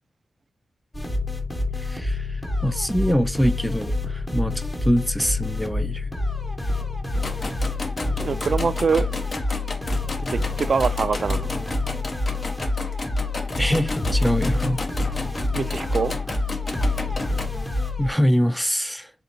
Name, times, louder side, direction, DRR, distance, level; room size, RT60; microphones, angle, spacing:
sound 1, 0.9-18.1, left 2 dB, 20° left, 0.9 m, -27 dB
voice 1, 1.7-6.1 13.6-14.8 18.0-19.1, equal, ahead, 0.4 m, -24 dB
sound 2, 7.1-17.5, left 2 dB, 50° left, 0.8 m, -33 dB
voice 2, 8.2-9.1 10.3-11.5 15.5-16.1, right 5 dB, 65° right, 0.3 m, -24 dB
3.8 x 3.4 x 2.7 m
wide cardioid pair, 80°, 0 cm